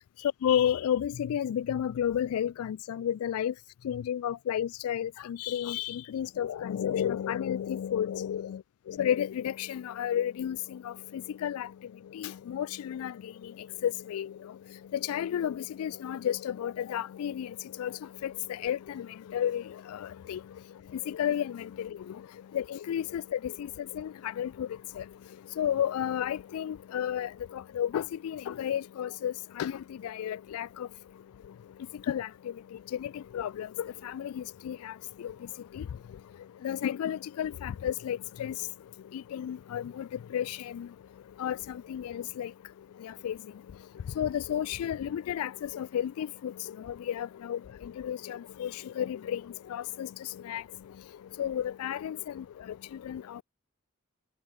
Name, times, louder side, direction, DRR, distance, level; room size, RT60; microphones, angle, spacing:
voice 1, 0.4-3.5 3.9-8.6 8.9-10.6 10.9-11.0 11.4-11.7 12.2-13.1 13.8-14.3 15.1-17.5 17.8-17.9 18.2-18.3 18.6-19.1 19.3-19.6 19.9-20.0 20.3-20.4 21.1-21.9 22.5-23.7 24.0-24.1 24.4-24.7 25.0-25.1 25.6-27.3 27.8-29.7 30.0-30.7 32.1-32.3 33.0-33.7 34.0-34.9 35.2-35.3 35.8-35.9 36.6-38.5 39.3-40.0 40.3-40.9 41.4-41.6 41.9-42.5 43.2-43.3 44.2-46.3 47.1-47.6 48.0-48.7 49.0-49.4 49.7-50.1 50.5-50.6 51.4-52.2 53.1-53.2, left 9 dB, 85° left, 0.3 m, -31 dB
head